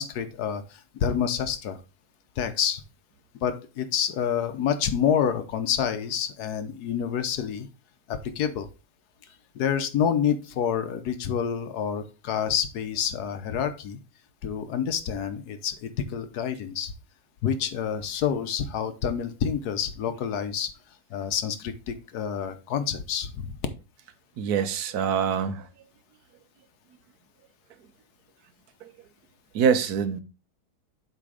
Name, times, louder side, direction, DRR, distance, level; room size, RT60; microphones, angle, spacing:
voice 1, 0.0-1.8 2.4-2.8 3.4-7.7 8.1-8.7 9.5-14.0 14.4-16.9 17.4-20.7 21.1-23.6, left 8 dB, 80° left, 1.4 m, -28 dB
voice 2, 24.4-25.7 28.8-28.9 29.5-30.2, right 7 dB, 75° right, 1.3 m, -24 dB
7.9 x 3.4 x 4.9 m
omnidirectional pair, 1.6 m